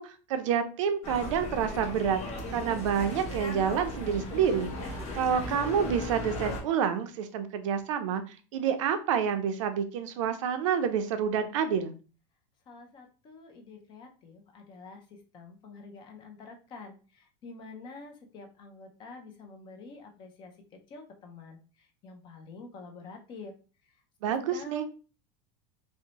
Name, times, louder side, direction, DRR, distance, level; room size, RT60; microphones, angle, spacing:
voice 1, 0.0-2.2 2.5-4.7 5.1-8.2 8.5-11.9 24.2-24.9, right 7 dB, 80° right, 8 dB, 0.5 m, -28 dB
sound 1, 1.0-6.6, left 1 dB, 50° left, 0.9 m, -37 dB
voice 2, 12.7-23.5 24.3-24.9, left 3 dB, 30° left, 4 dB, 0.5 m, -48 dB
2.6 x 2.1 x 2.8 m, 0.35 s
supercardioid pair, 150°, 16 cm